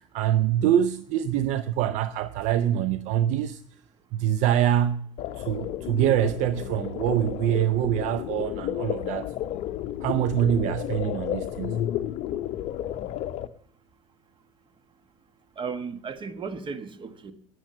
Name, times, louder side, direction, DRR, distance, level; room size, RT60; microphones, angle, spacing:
voice 1, 0.1-3.6 4.1-5.1 5.4-9.3 10.0-11.9, right 11 dB, 50° right, 0.6 m, -25 dB
sound 1, 5.2-13.5, left 12 dB, 45° left, 0.6 m, -32 dB
voice 2, 15.6-17.3, right 5 dB, 30° right, 1.3 m, -35 dB
13.0 x 9.2 x 6.6 m
figure-of-eight pair, 70°, 16 cm